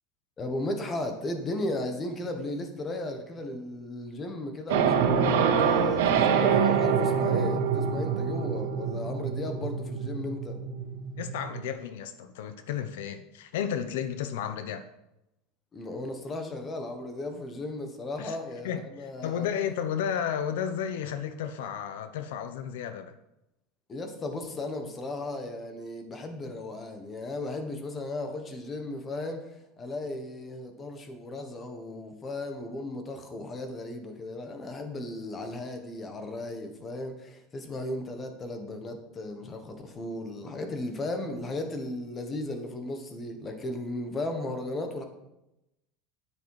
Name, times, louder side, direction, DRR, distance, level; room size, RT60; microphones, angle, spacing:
voice 1, 0.4-10.6 15.7-19.5 23.9-45.0, left 2 dB, 20° left, 6 dB, 1.3 m, -35 dB
sound 1, 4.7-11.7, right 6 dB, 85° right, 1.5 m, -26 dB
voice 2, 11.2-14.8 18.2-18.4 18.6-23.1, left 8 dB, 85° left, 10 dB, 0.9 m, -33 dB
10.0 x 9.0 x 4.9 m, 0.88 s
supercardioid pair, 170°, 0 cm